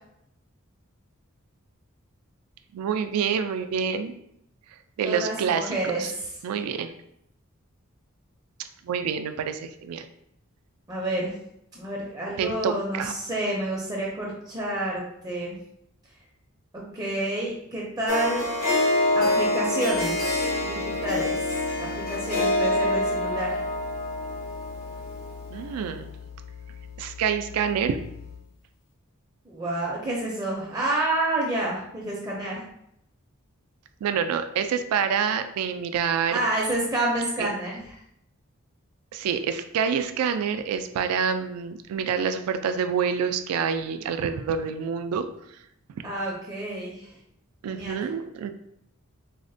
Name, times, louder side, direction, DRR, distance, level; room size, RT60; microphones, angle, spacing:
voice 1, 2.7-4.1 5.0-6.1 6.4-6.9 8.8-10.1 12.4-13.1 25.5-26.1 27.0-28.0 34.0-36.4 37.4-37.5 39.1-45.3 47.6-48.5, right 7 dB, 90° right, 13 dB, 0.3 m, -27 dB
voice 2, 5.0-6.3 10.9-11.3 11.7-15.6 16.7-18.4 19.1-23.6 29.5-32.6 36.3-38.0 46.0-47.1 47.7-48.0, right 1 dB, 15° right, -4 dB, 0.4 m, -29 dB
Harp, 18.1-25.6, left 1 dB, 85° left, 1.0 m, -26 dB
sound 1, 19.9-28.6, left 7 dB, 55° left, 0.4 m, -43 dB
3.9 x 2.1 x 2.6 m, 0.77 s
head